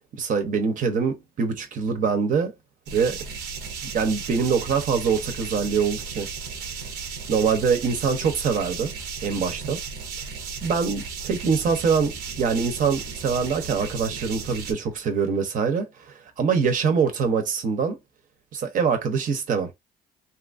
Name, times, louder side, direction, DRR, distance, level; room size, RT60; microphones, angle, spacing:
voice 1, 0.2-2.5 2.9-3.2 3.9-6.3 7.3-8.9 9.2-9.8 10.6-18.0 18.5-19.7, right 5 dB, 50° right, 0.7 m, -24 dB
sound 1, 2.9-14.7, right 5 dB, 85° right, 0.7 m, -35 dB
2.8 x 2.4 x 2.5 m
cardioid pair, 110°, 17 cm